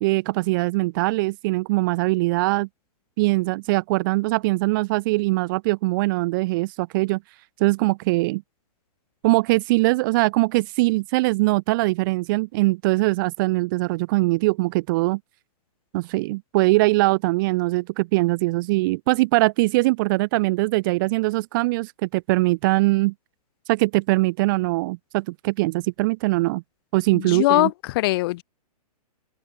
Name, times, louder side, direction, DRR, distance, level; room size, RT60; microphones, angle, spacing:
voice 1, 0.0-2.7 3.2-7.2 7.6-8.4 9.2-15.2 15.9-23.1 23.7-26.6 26.9-27.7, right 22 dB, 30° right, 1.7 m, -22 dB
voice 2, 27.1-28.4, left 19 dB, 35° left, 6.3 m, -21 dB
hypercardioid pair, 160°, 20 cm